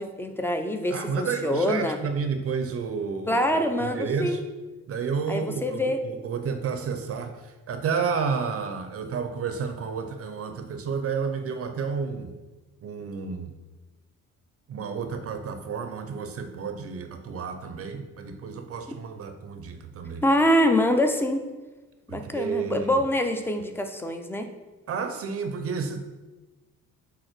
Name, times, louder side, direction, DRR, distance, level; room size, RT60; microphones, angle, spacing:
voice 1, 0.0-2.0 3.3-4.4 5.3-6.0 20.2-21.4 22.1-24.5, left 1 dB, 10° left, 7 dB, 0.3 m, -25 dB
voice 2, 0.9-4.4 4.9-12.3 12.8-13.5 14.7-20.2 22.1-22.9 24.9-26.0, right 5 dB, 50° right, 8 dB, 0.5 m, -31 dB
5.4 x 4.0 x 5.8 m, 1.2 s
cardioid pair, 175°, 31 cm